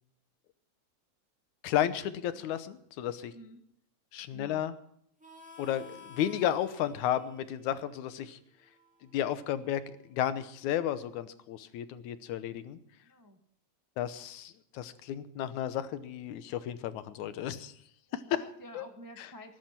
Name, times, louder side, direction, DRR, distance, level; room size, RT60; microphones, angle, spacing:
voice 1, 1.6-3.3 4.1-4.7 5.6-8.4 9.1-12.8 14.0-17.7 18.1-18.4 18.7-18.8 19.2-19.3, left 11 dB, 85° left, 12 dB, 2.4 m, -33 dB
voice 2, 4.3-4.6 13.0-13.4 18.1-19.6, equal, 20° right, 4 dB, 0.5 m, -50 dB
Harmonica, 5.2-10.5, left 4 dB, 5° right, 1.8 m, -55 dB
19.0 x 10.5 x 5.9 m, 0.70 s
omnidirectional pair, 3.3 m